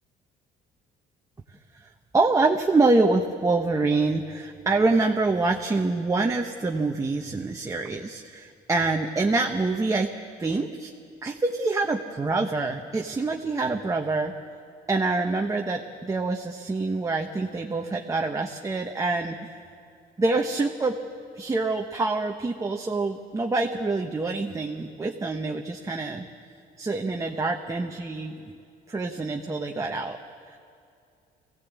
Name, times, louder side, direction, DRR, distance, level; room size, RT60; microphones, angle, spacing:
voice 1, 2.1-10.1 10.4-10.9 11.2-14.3 14.9-19.5 20.2-21.0 21.3-26.3 26.8-28.4 28.9-30.2, right 3 dB, 20° right, 2 dB, 1.1 m, -26 dB
22.0 x 16.5 x 8.4 m, 2.5 s
cardioid pair, 110°, 17 cm